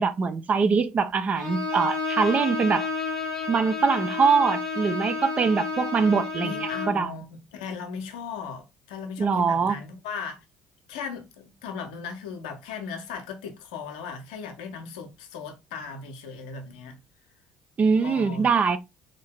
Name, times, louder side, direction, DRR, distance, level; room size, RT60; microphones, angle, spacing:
voice 1, 0.0-2.9 3.5-7.1 9.2-9.8 17.8-18.8, right 5 dB, 35° right, 0.5 m, -23 dB
Bowed string instrument, 1.4-7.0, left 4 dB, 90° right, 1.8 m, -31 dB
voice 2, 6.1-10.4 10.9-17.0 18.0-18.5, left 5 dB, 70° left, 0.7 m, -37 dB
3.8 x 2.7 x 3.4 m
figure-of-eight pair, 55°, 4 cm